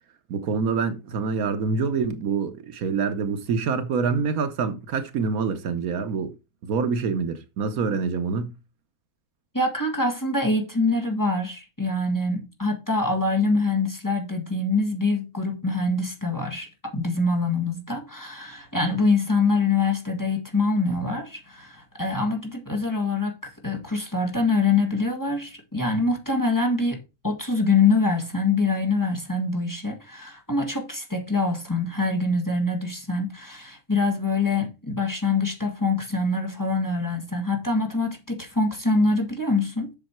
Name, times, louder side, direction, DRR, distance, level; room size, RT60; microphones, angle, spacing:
voice 1, 0.3-6.3 6.6-8.5, right 5 dB, 75° right, 1.3 m, -26 dB
voice 2, 9.5-16.7 16.9-23.3 23.6-27.0 27.2-39.9, left 3 dB, 15° left, 1.7 m, -24 dB
7.6 x 6.6 x 4.4 m
omnidirectional pair, 1.6 m